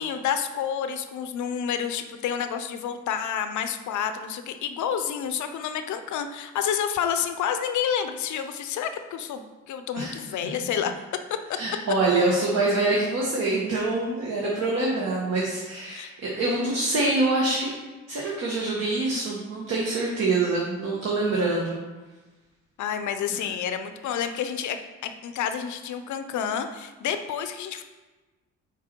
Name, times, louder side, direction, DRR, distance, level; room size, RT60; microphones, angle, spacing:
voice 1, 0.0-10.9 15.9-16.1 22.8-24.8 25.0-27.8, left 8 dB, 75° left, 8 dB, 0.7 m, -29 dB
voice 2, 11.5-17.7 18.1-21.8, right 2 dB, 55° right, -4 dB, 1.4 m, -25 dB
6.0 x 4.2 x 4.4 m, 1.2 s
cardioid pair, 90°, 30 cm